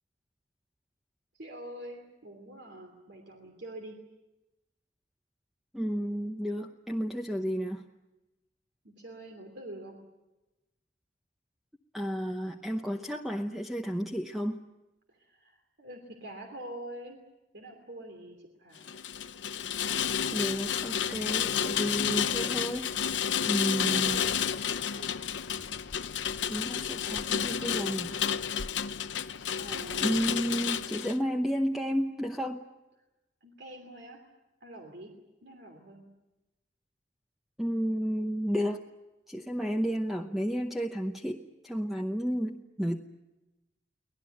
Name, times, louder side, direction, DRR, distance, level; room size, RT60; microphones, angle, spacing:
voice 1, 1.3-4.0 8.8-10.0 15.1-17.2 17.5-19.0 23.7-24.3 24.8-25.1 29.6-30.2 33.4-34.2 34.6-35.1 35.4-36.0, right 1 dB, 60° right, 3 dB, 3.0 m, -45 dB
voice 2, 5.7-7.9 11.9-14.6 20.3-22.9 23.4-24.3 26.5-28.1 30.0-32.6 37.6-38.8 39.3-43.0, equal, ahead, 3 dB, 0.9 m, -32 dB
Rain, 18.8-31.2, left 8 dB, 75° left, 0.8 m, -31 dB
24.5 x 18.5 x 9.3 m, 1.0 s
head